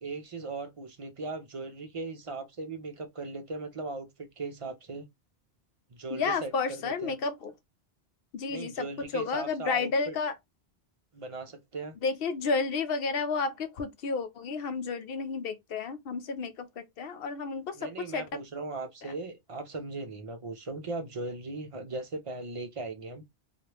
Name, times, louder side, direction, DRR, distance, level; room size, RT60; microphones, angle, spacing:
voice 1, 0.0-5.1 5.9-7.2 8.5-10.1 11.1-12.0 17.7-23.3, right 3 dB, 40° right, 0.5 m, -38 dB
voice 2, 6.1-7.5 8.3-10.3 12.0-18.3 19.0-19.1, left 4 dB, 65° left, 0.8 m, -31 dB
3.1 x 2.4 x 2.9 m
omnidirectional pair, 1.1 m